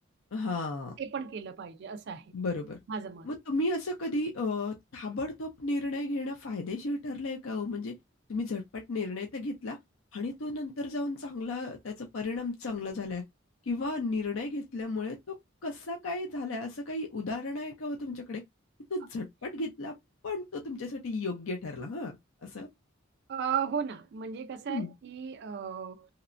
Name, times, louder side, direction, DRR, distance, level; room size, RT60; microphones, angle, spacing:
voice 1, 0.3-1.0 2.3-2.8 3.2-7.9 8.3-9.8 10.1-13.2 13.7-15.3 15.6-18.4 18.9-20.0 20.2-22.2 22.4-22.7 24.7-24.9, left 2 dB, 80° left, 0.5 m, -34 dB
voice 2, 1.0-2.3 2.9-3.3 23.3-26.1, right 7 dB, 55° right, 0.4 m, -35 dB
2.9 x 2.1 x 2.5 m
head